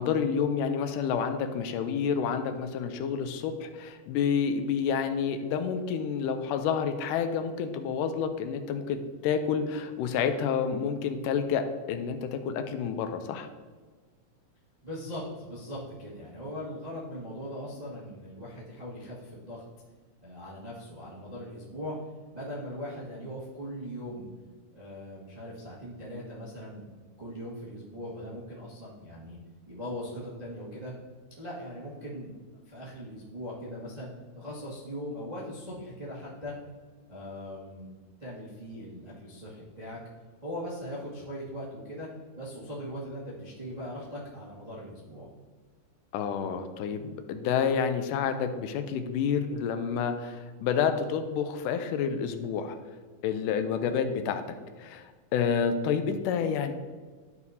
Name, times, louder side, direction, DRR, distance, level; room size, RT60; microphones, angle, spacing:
voice 1, 0.0-13.5 46.1-52.8 53.2-56.7, left 7 dB, 80° left, 8 dB, 2.1 m, -29 dB
voice 2, 14.8-19.6 20.2-21.9 22.3-24.3 24.7-26.9 27.2-29.4 29.7-30.9 31.4-32.3 32.6-34.1 34.3-36.5 37.1-37.9 38.2-40.0 40.4-42.1 42.3-45.3, equal, 80° right, -8 dB, 0.3 m, -40 dB
12.5 x 4.7 x 2.7 m, 1.4 s
omnidirectional pair, 3.9 m